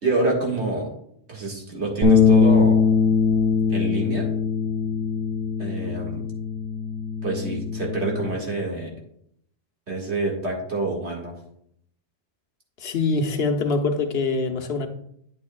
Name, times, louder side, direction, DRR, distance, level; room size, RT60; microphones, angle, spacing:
voice 1, 0.0-0.9 1.3-2.8 3.7-4.3 5.6-6.3 7.2-8.9 9.9-11.3, right 2 dB, 75° right, 2.2 m, -27 dB
sound 1, 2.0-8.3, left 5 dB, 30° right, 1.6 m, -21 dB
voice 2, 12.8-14.9, left 3 dB, 65° left, 1.0 m, -24 dB
9.2 x 8.4 x 2.3 m
omnidirectional pair, 1.1 m